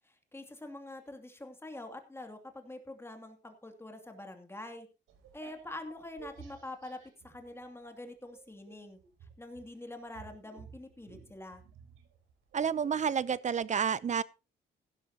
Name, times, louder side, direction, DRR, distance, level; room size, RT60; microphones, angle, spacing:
voice 1, 0.0-4.9 5.3-7.0 7.2-9.0 9.4-11.6, left 2 dB, 10° left, 2.6 m, -45 dB
sound 1, 5.1-7.9 8.3-13.1, right 6 dB, 85° right, 3.5 m, -54 dB
voice 2, 12.5-14.2, right 7 dB, 35° right, 0.7 m, -30 dB
16.0 x 11.5 x 2.9 m
cardioid pair, 105°, 20 cm